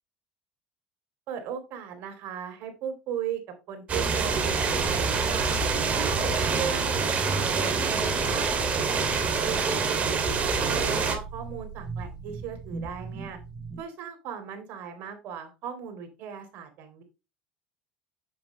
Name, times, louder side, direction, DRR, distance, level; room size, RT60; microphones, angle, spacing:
voice 1, 1.3-3.4 3.7-5.5 5.9-6.3 6.6-8.5 8.9-13.4 13.8-17.0, right 8 dB, 65° right, 6 dB, 3.6 m, -37 dB
sound 1, 3.9-11.2, right 5 dB, 40° right, 2.6 m, -26 dB
sound 2, 4.6-13.8, right 1 dB, 25° right, 4.5 m, -38 dB
7.8 x 7.6 x 3.2 m, 0.27 s
supercardioid pair, 85°, 4 cm